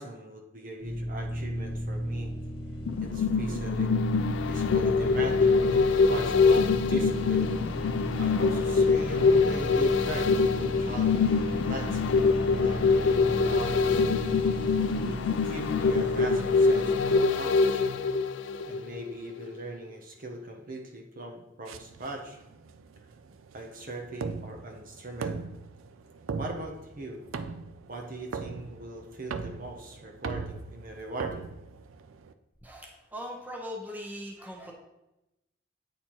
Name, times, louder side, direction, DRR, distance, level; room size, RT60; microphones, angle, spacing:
voice 1, 0.0-2.3 3.0-4.0 4.5-7.5 8.2-14.0 15.0-18.0 18.6-22.4 23.5-25.4 26.4-27.2 27.9-31.5, right 1 dB, 45° right, 2 dB, 0.7 m, -40 dB
sound 1, 0.8-17.1, equal, 25° left, 1.0 m, -35 dB
sound 2, 2.9-19.1 19.5-19.6, left 4 dB, 65° left, 0.3 m, -24 dB
sound 3, 21.7-32.3, right 5 dB, 85° right, 0.4 m, -39 dB
voice 2, 32.6-34.7, equal, 10° right, 0 dB, 0.8 m, -40 dB
8.5 x 4.2 x 3.0 m, 0.93 s
head